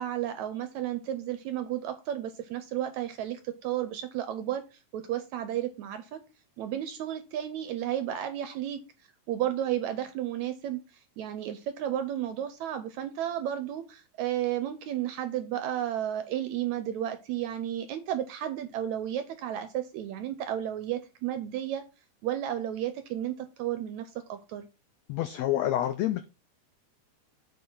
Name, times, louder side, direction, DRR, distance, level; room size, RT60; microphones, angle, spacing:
voice 1, 0.0-6.2 6.6-8.8 9.3-21.8 22.2-24.7, right 11 dB, 75° right, 1.8 m, -33 dB
voice 2, 25.1-26.3, left 12 dB, 90° left, 1.5 m, -28 dB
8.0 x 4.5 x 5.4 m
omnidirectional pair, 3.8 m